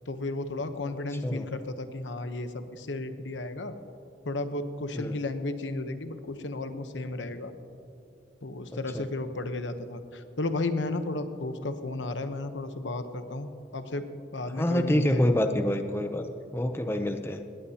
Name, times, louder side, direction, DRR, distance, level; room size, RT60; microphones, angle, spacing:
voice 1, 0.1-3.7 4.2-7.5 8.4-14.1 14.3-15.3, left 2 dB, 90° left, 9 dB, 1.0 m, -33 dB
voice 2, 14.5-16.3 16.5-17.4, left 1 dB, 15° left, 7 dB, 0.6 m, -27 dB
19.5 x 18.0 x 2.9 m, 2.6 s
head